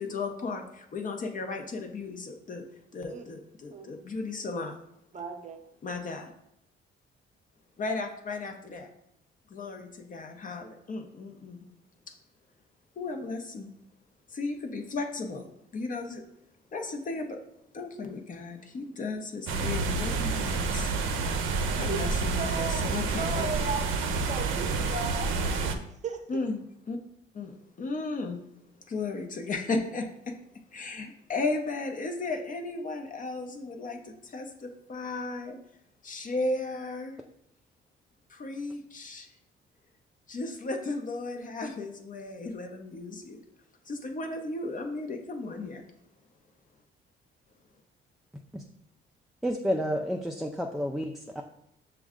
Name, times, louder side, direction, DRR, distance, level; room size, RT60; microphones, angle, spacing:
voice 1, 0.0-2.6 2.9-4.8 5.8-6.3 7.8-8.9 9.5-11.7 13.0-13.7 14.3-15.5 15.7-16.2 16.7-17.4 17.7-20.9 21.7-23.4 26.3-27.0 27.3-28.4 28.9-30.3 30.7-35.6 36.0-37.2 38.3-39.3 40.3-43.4 43.9-45.8, left 3 dB, 40° left, 4 dB, 0.7 m, -35 dB
voice 2, 5.1-5.6 21.7-22.0 22.3-25.8 26.0-26.2, right 4 dB, 35° right, 5 dB, 0.7 m, -36 dB
sound 1, 19.5-25.8, right 4 dB, 85° right, 0.5 m, -29 dB
voice 3, 49.4-51.2, equal, ahead, 2 dB, 0.3 m, -30 dB
6.1 x 2.3 x 3.6 m, 0.77 s
cardioid pair, 90°, 20 cm